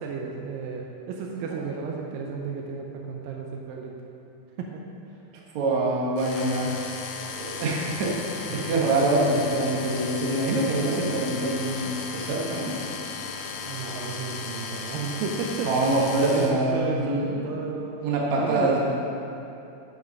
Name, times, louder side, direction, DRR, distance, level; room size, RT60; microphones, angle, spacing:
voice 1, 0.0-3.9 4.6-4.8 8.5-8.9 13.6-18.0 18.4-18.8, right 5 dB, 85° right, 0 dB, 2.5 m, -33 dB
voice 2, 1.3-1.7 5.5-6.7 7.4-12.7 15.7-17.4 18.0-18.8, right 2 dB, 60° right, -3 dB, 2.6 m, -25 dB
sound 1, 6.2-16.5, left 5 dB, 75° left, 2.3 m, -36 dB
9.3 x 7.8 x 5.3 m, 2.7 s
omnidirectional pair, 3.9 m